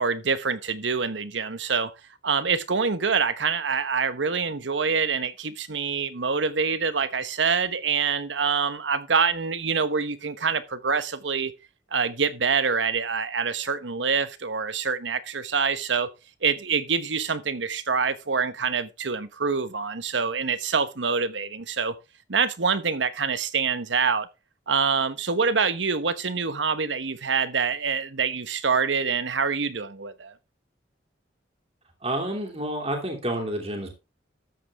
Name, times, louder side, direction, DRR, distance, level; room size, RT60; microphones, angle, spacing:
voice 1, 0.0-1.9 2.2-11.5 11.9-16.1 16.4-22.0 22.3-24.3 24.7-30.3, right 5 dB, 85° right, 1.1 m, -25 dB
voice 2, 32.0-34.0, right 1 dB, 35° right, 2.9 m, -29 dB
13.0 x 8.4 x 3.5 m
head